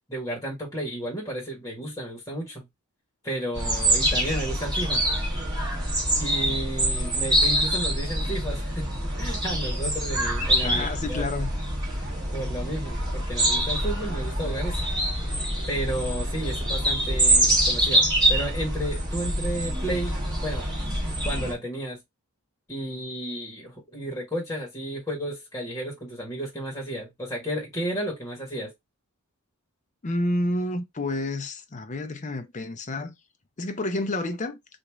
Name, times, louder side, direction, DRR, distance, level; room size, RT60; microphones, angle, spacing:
voice 1, 0.1-2.7 3.2-5.0 6.2-8.9 9.2-11.2 12.0-14.8 15.7-18.0 18.3-20.7 21.2-22.0 22.7-28.7, right 1 dB, 15° left, 1.5 m, -32 dB
sound 1, 3.5-21.5, right 1 dB, 20° right, 1.5 m, -25 dB
voice 2, 10.6-11.5 30.0-33.1 33.6-34.6, left 2 dB, 35° left, 0.6 m, -29 dB
3.0 x 2.7 x 3.4 m
head